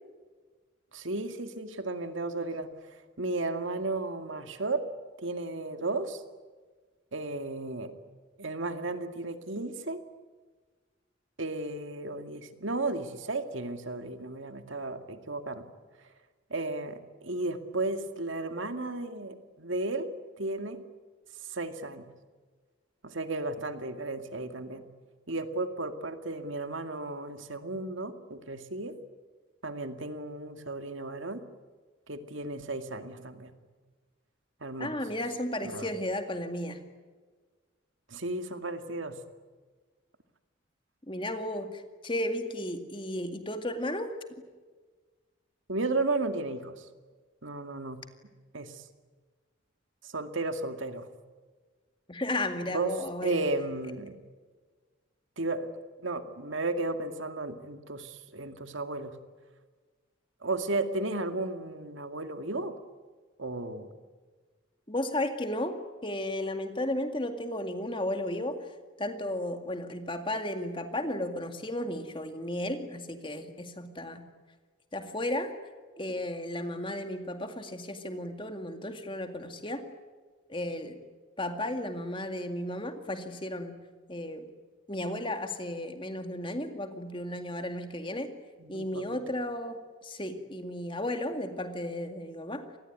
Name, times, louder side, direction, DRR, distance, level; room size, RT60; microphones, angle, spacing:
voice 1, 0.9-4.8 5.2-6.2 7.1-7.9 8.4-10.0 11.4-15.7 16.5-20.1 20.4-20.8 21.5-22.1 23.0-24.9 25.3-28.9 29.6-31.4 32.1-33.5 34.6-34.9 35.7-35.9 38.1-39.2 45.7-46.9 47.4-48.0 48.5-48.9 50.0-51.1 52.7-52.9 53.2-54.2 55.4-55.7 56.0-59.2 60.4-62.8 63.4-63.9 88.6-89.2, right 2 dB, 70° right, 8 dB, 2.1 m, -34 dB
voice 2, 34.8-36.8 41.1-44.1 52.1-53.5 64.9-68.7 69.0-74.3 74.9-75.5 76.0-79.9 80.5-81.0 81.4-83.8 84.1-84.5 84.9-88.3 88.7-92.7, left 1 dB, 25° left, 7 dB, 2.1 m, -34 dB
27.0 x 20.0 x 9.4 m, 1.4 s
head